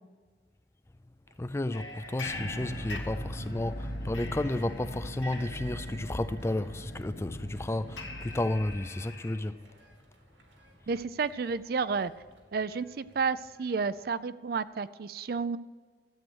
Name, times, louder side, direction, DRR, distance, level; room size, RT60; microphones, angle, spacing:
sound 1, 1.3-14.1, right 2 dB, 85° right, 2.2 m, -60 dB
voice 1, 1.4-9.6, left 1 dB, 15° left, 0.4 m, -32 dB
sound 2, 1.7-3.7 4.1-9.4, left 2 dB, 85° left, 1.7 m, -44 dB
sound 3, 2.2-8.8, equal, 60° left, 1.6 m, -40 dB
voice 2, 10.9-12.1 12.5-15.6, right 5 dB, 55° right, 0.4 m, -31 dB
13.0 x 8.6 x 6.3 m
head